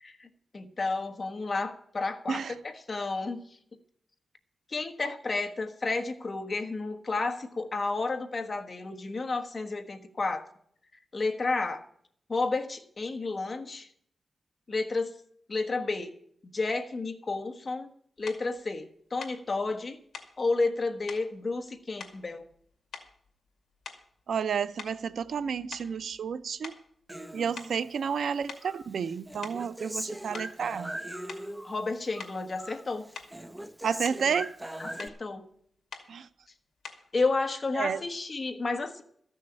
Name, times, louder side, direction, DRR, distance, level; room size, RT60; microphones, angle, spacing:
voice 1, 0.0-3.4 4.7-10.4 11.1-11.8 12.3-13.9 14.7-15.1 15.5-16.1 16.4-17.9 18.2-20.0 20.4-22.4 31.6-33.1 34.8-35.4 37.1-39.0, left 3 dB, 35° left, 1.2 m, -31 dB
sound 1, 18.3-18.5 19.2-19.4 20.1-20.4 21.1-21.3 22.0-22.6 22.9-23.3 23.8-24.2 24.8-26.3 26.6-26.9 27.6-27.8 28.5-28.7 29.2-29.7 30.3-30.6 31.3-31.5 32.2-32.4 33.1-33.4 33.8-34.3 35.0-35.2 35.9-36.1 36.8-37.1, left 5 dB, 70° left, 2.2 m, -45 dB
voice 2, 24.3-26.7 27.3-30.9 33.8-34.5 36.1-36.3 37.8-38.0, right 7 dB, 75° right, 0.5 m, -31 dB
Human voice, 27.1-28.3 28.6-31.8 32.1-32.8 33.1-35.1, right 1 dB, 10° right, 0.7 m, -40 dB
13.5 x 6.4 x 8.8 m
wide cardioid pair, 170°, 0 cm